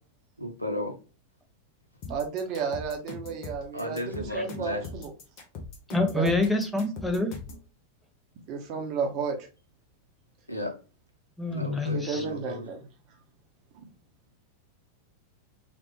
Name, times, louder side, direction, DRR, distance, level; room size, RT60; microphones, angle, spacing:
voice 1, 0.4-0.9 3.7-4.8 10.5-10.7 11.5-12.6, left 1 dB, 90° left, 3 dB, 0.7 m, -34 dB
sound 1, 2.0-7.7, left 4 dB, 40° left, 0.9 m, -41 dB
voice 2, 2.1-5.1 6.1-6.3 8.5-9.5 11.9-12.9 13.7-13.8, right 5 dB, 40° right, 3 dB, 0.8 m, -32 dB
voice 3, 5.9-7.3 11.4-12.2, left 2 dB, ahead, 4 dB, 0.6 m, -27 dB
3.3 x 2.4 x 3.0 m, 0.34 s
figure-of-eight pair, 90°, 0 cm